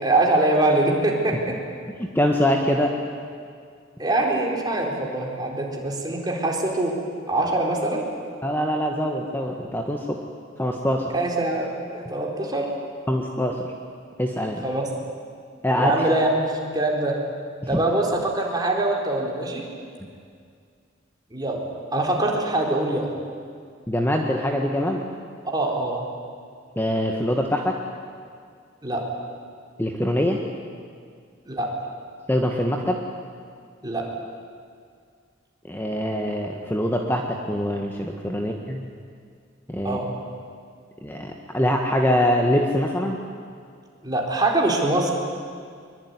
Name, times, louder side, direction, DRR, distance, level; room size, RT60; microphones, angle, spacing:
voice 1, 0.0-1.6 4.0-6.9 7.3-8.0 11.1-12.7 14.6-14.9 15.8-17.2 17.7-19.6 21.3-21.6 21.9-23.1 25.5-26.0 28.8-29.0 31.5-31.7 33.8-34.0 39.8-40.1 44.0-45.1, right 2 dB, 20° right, -1 dB, 4.2 m, -23 dB
voice 2, 2.0-2.9 8.4-10.2 10.6-11.1 13.1-13.6 14.2-14.6 15.6-16.1 17.7-17.8 23.9-25.0 26.7-27.8 29.8-30.4 32.3-33.0 35.7-38.9 39.7-40.0 41.0-43.2, equal, 10° left, 1 dB, 1.5 m, -24 dB
23.5 x 23.0 x 9.7 m, 2.2 s
head